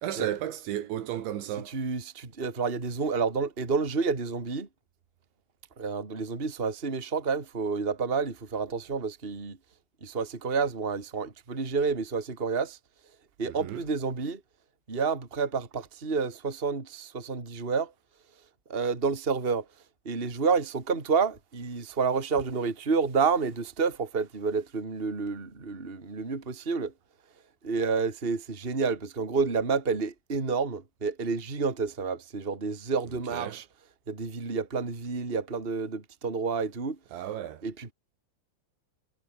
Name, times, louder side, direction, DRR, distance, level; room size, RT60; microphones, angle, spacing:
voice 1, 0.0-1.8 13.5-13.8 33.3-33.6 37.1-37.6, right 11 dB, 70° right, 4.0 m, -34 dB
voice 2, 1.7-4.7 5.8-9.6 10.0-12.8 13.4-14.4 14.9-17.9 18.7-19.6 20.0-26.9 27.6-33.6 34.1-37.0 37.6-37.9, right 5 dB, 15° right, 2.6 m, -29 dB
omnidirectional pair, 5.6 m